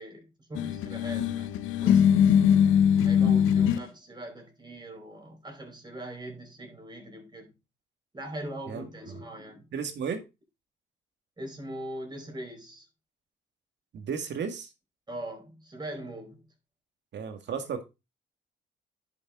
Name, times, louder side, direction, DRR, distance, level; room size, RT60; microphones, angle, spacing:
voice 1, 0.0-2.1 3.0-7.5 8.1-9.7 11.4-12.9 15.1-16.4, right 1 dB, 20° right, 4.6 m, -41 dB
sound 1, 0.5-3.8, left 8 dB, 90° left, 0.7 m, -22 dB
voice 2, 8.7-9.2 9.7-10.2 13.9-14.7 17.1-17.8, right 6 dB, 65° right, 1.9 m, -34 dB
10.5 x 6.8 x 3.7 m
cardioid pair, 90°, 20 cm